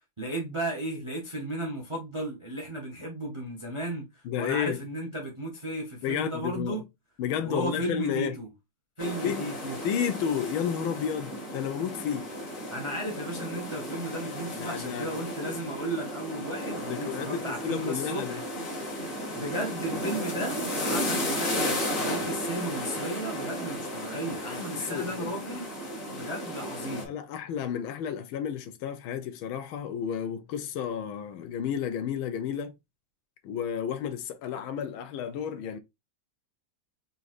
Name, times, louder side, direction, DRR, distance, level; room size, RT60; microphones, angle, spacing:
voice 1, 0.2-6.8 7.4-8.5 9.0-9.8 12.7-18.4 19.3-25.7 26.1-27.1, right 1 dB, 45° right, 0.4 m, -35 dB
voice 2, 4.2-4.8 6.0-6.8 7.2-8.3 9.2-9.5 9.8-12.3 14.6-15.1 16.8-18.4 24.5-25.3 26.9-32.7 33.4-35.8, left 8 dB, 75° left, 1.4 m, -32 dB
sound 1, 9.0-27.0, equal, 45° left, 1.4 m, -34 dB
4.0 x 3.8 x 2.5 m
omnidirectional pair, 2.3 m